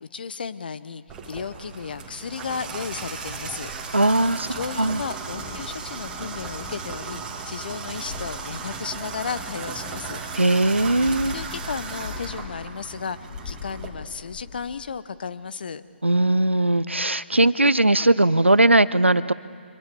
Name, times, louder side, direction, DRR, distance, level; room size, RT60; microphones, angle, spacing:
voice 1, 0.0-3.7 4.5-10.2 11.1-13.2 13.4-15.8, left 6 dB, 50° left, 15 dB, 0.9 m, -34 dB
Water tap faucet / Bathtub (filling or washing), 1.1-13.9, right 5 dB, 10° right, 2.2 m, -36 dB
voice 2, 3.9-5.0 10.3-11.3 16.0-19.3, right 2 dB, 90° right, 17 dB, 0.7 m, -19 dB
sound 1, 5.2-7.0 7.9-9.4 10.8-13.0 13.3-15.0, left 5 dB, 30° left, 1.8 m, -41 dB
27.5 x 24.5 x 7.0 m, 2.3 s
figure-of-eight pair, 140°, 6 cm